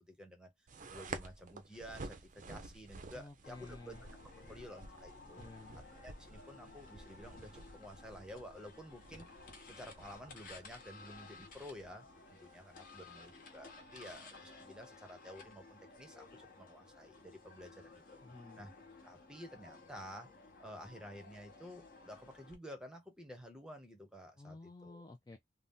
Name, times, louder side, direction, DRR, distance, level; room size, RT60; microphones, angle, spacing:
voice 1, 0.0-4.0 4.5-5.4 6.0-18.2 18.6-18.7 19.0-25.1, equal, 5° right, 0.7 m, -52 dB
sound 1, 0.7-14.2, right 3 dB, 45° right, 0.5 m, -52 dB
voice 2, 3.1-4.0 4.4-4.7 5.4-5.8 18.2-18.6 24.4-25.4, left 2 dB, 20° left, 0.3 m, -53 dB
sound 2, 3.4-22.5, left 3 dB, 50° left, 0.9 m, -56 dB
2.7 x 2.0 x 3.5 m
head